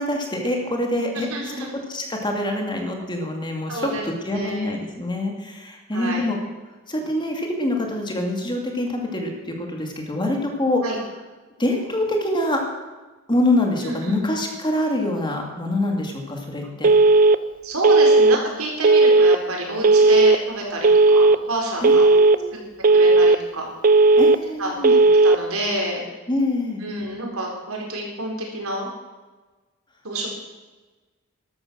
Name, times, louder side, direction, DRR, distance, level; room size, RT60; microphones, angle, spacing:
voice 1, 0.0-6.4 6.9-10.9 11.6-12.6 13.3-16.9 21.8-22.6 24.2-24.9 26.3-26.8, left 1 dB, 20° left, 2 dB, 2.4 m, -25 dB
voice 2, 1.1-1.7 3.7-4.7 5.9-6.3 10.8-11.0 13.8-14.2 17.6-22.0 22.9-23.7 24.6-25.0 25.2-26.0 26.8-28.9 30.0-30.3, right 1 dB, 75° right, 0 dB, 4.4 m, -28 dB
Telephone, 16.8-17.4 17.8-18.4 18.8-19.4 19.8-20.4 20.8-21.4 21.8-22.4 22.8-23.4 23.8-24.4 24.8-25.4, right 3 dB, 40° right, 0.5 m, -14 dB
13.5 x 12.5 x 6.3 m, 1.2 s
head